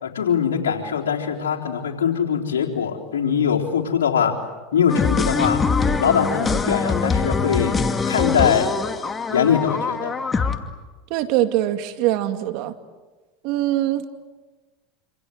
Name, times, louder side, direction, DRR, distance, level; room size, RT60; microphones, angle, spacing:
voice 1, 0.0-4.4 4.7-5.6 6.0-7.8 8.1-8.7 9.3-10.1, left 7 dB, 85° left, -1 dB, 3.9 m, -22 dB
sound 1, 4.9-10.6, left 4 dB, 20° left, 2.4 m, -23 dB
voice 2, 11.1-12.7 13.4-14.0, right 14 dB, 65° right, 8 dB, 2.4 m, -22 dB
26.5 x 26.5 x 8.1 m, 1.3 s
hypercardioid pair, 95°, 0 cm